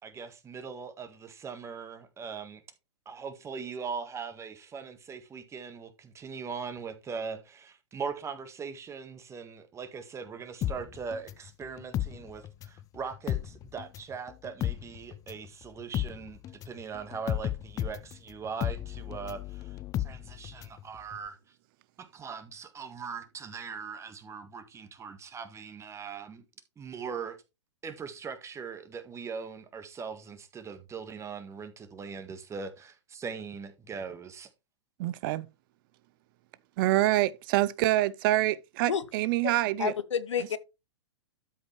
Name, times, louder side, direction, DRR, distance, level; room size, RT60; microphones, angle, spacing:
voice 1, 0.0-2.6 3.0-16.4 16.6-21.4 22.0-26.4 26.8-27.4 27.8-34.5, right 5 dB, 20° right, 1.6 m, -40 dB
sound 1, 10.6-12.8 13.1-20.8 21.1-21.2, left 12 dB, 25° left, 0.4 m, -34 dB
voice 2, 35.0-35.5 36.8-39.9, right 16 dB, 50° right, 0.6 m, -26 dB
voice 3, 39.8-40.6, left 8 dB, 80° left, 1.0 m, -29 dB
12.5 x 5.2 x 3.3 m
hypercardioid pair, 115°, 15 cm